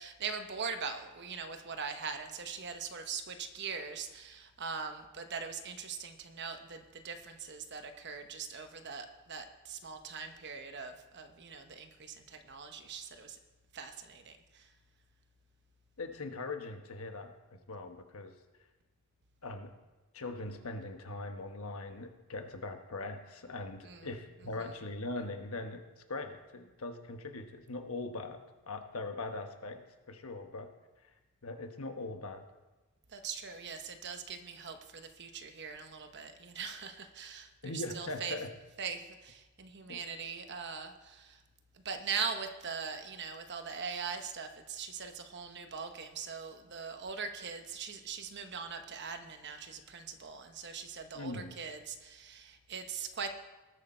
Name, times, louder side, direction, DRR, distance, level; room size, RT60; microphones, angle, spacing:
voice 1, 0.0-13.4 13.7-14.7 23.8-24.1 33.1-38.4 38.8-41.4 41.7-53.3, right 5 dB, 50° right, 7 dB, 1.0 m, -41 dB
voice 2, 16.0-18.3 19.4-19.7 20.1-30.7 31.0-31.1 31.4-32.4 37.6-38.5 39.9-40.0 51.1-51.5, left 2 dB, 70° left, 5 dB, 1.2 m, -41 dB
19.5 x 6.7 x 4.4 m, 1.1 s
head